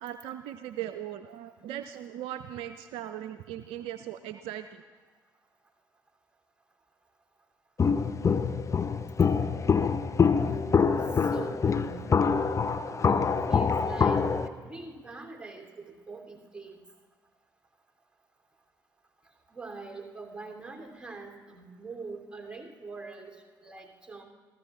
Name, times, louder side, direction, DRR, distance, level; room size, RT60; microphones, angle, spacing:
voice 1, 0.0-4.8, right 11 dB, 60° right, 11 dB, 0.5 m, -39 dB
Walk footsteps, 7.8-14.5, left 5 dB, 30° left, 0.7 m, -25 dB
voice 2, 11.1-12.1 12.9-16.8 19.5-24.2, right 3 dB, 10° right, 1 dB, 3.0 m, -44 dB
28.0 x 14.5 x 2.4 m, 1.5 s
figure-of-eight pair, 50°, 11 cm